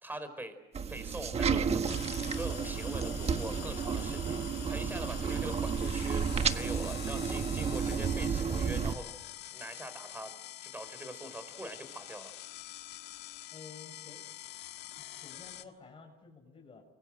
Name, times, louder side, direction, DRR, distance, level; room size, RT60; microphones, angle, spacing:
voice 1, 0.0-0.6 0.9-2.0 2.3-9.1 9.5-10.3 10.6-12.3, right 1 dB, 10° right, 10 dB, 4.9 m, -43 dB
sound 1, 0.7-8.9, right 6 dB, 40° right, 1.4 m, -32 dB
sound 2, 1.9-15.6, left 14 dB, 85° left, 1.6 m, -46 dB
voice 2, 13.5-14.3 15.0-16.8, left 4 dB, 35° left, 2 dB, 5.8 m, -52 dB
29.5 x 23.0 x 7.8 m, 1.0 s
cardioid pair, 110°, 17 cm